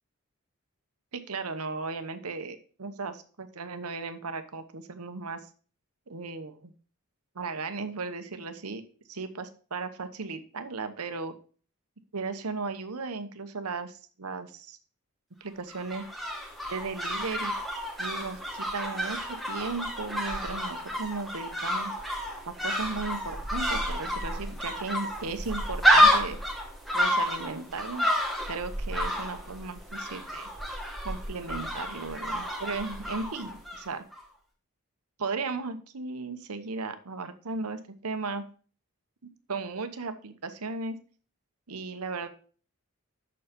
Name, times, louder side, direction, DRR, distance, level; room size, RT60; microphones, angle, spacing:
voice 1, 1.1-5.5 6.1-6.7 7.3-8.8 9.1-11.3 12.1-14.8 15.4-16.1 16.7-17.5 18.0-21.9 22.5-26.6 26.9-28.1 28.5-30.5 31.0-34.0 35.2-38.4 39.5-41.0 41.7-42.3, right 4 dB, 90° right, 9 dB, 1.0 m, -36 dB
sound 1, 15.7-33.9 34.1-34.2, equal, ahead, 1.4 m, -29 dB
7.1 x 6.4 x 5.2 m, 0.40 s
head